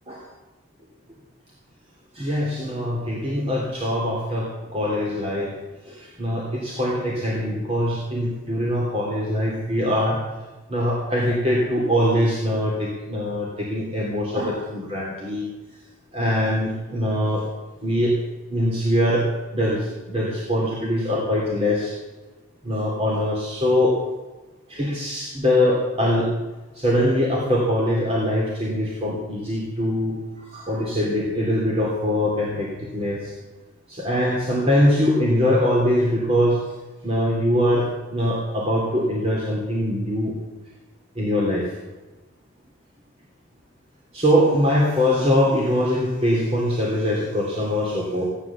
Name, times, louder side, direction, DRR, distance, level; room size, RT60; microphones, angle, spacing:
voice 1, 2.1-5.5 5.9-10.2 10.7-15.4 16.1-17.4 17.8-18.2 18.5-22.0 22.6-24.0 24.7-26.3 26.7-33.3 33.9-36.6 37.0-40.3 41.1-41.7 44.1-48.2, equal, 30° right, -4 dB, 2.9 m, -22 dB
16.5 x 10.5 x 7.2 m, 1.2 s
head